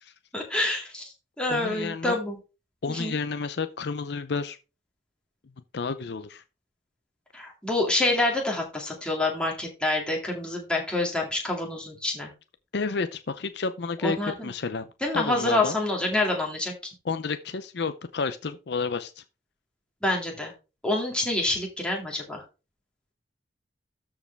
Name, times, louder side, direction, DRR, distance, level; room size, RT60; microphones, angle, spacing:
voice 1, 0.3-2.4 2.9-3.2 7.3-12.3 14.0-14.5 15.0-16.7 20.0-20.5 20.8-22.4, left 2 dB, 5° left, 2.3 m, -27 dB
voice 2, 1.5-2.2 2.8-4.6 5.7-6.4 12.7-14.2 14.4-14.9 15.1-15.8 17.1-19.2, left 4 dB, 65° left, 0.6 m, -30 dB
13.0 x 4.8 x 3.4 m
head